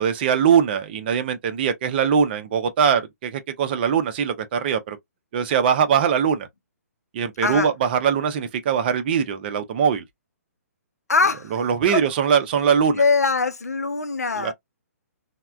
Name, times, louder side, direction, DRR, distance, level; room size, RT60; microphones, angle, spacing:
voice 1, 0.0-5.0 5.3-6.5 7.1-10.0 11.5-13.0 14.4-14.5, right 7 dB, 40° right, 0.5 m, -21 dB
voice 2, 11.1-11.5 11.9-12.1 13.0-14.5, left 4 dB, 80° left, 0.5 m, -22 dB
3.2 x 2.1 x 2.3 m
figure-of-eight pair, 130°, 9 cm